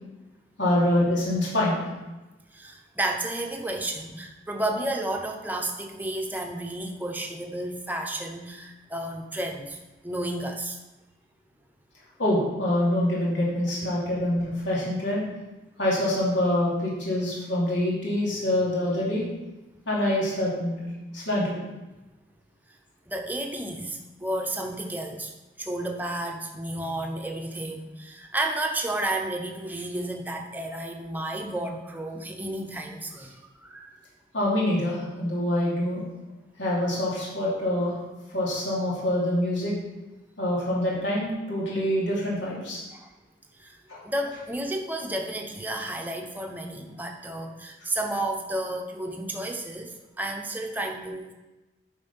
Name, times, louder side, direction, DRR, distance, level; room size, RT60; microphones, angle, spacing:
voice 1, 0.6-1.8 12.2-15.2 15.8-19.2 19.9-20.8 21.1-21.5 34.3-36.0 36.6-38.0 38.3-39.7 40.4-42.8 43.9-44.0, left 1 dB, 85° left, -6 dB, 2.8 m, -25 dB
voice 2, 2.5-9.8 10.0-10.8 14.1-14.2 23.1-25.3 25.6-34.0 42.9-43.1 43.6-43.8 44.0-51.3, right 1 dB, 10° right, 2 dB, 0.8 m, -32 dB
9.2 x 5.2 x 5.4 m, 1.1 s
head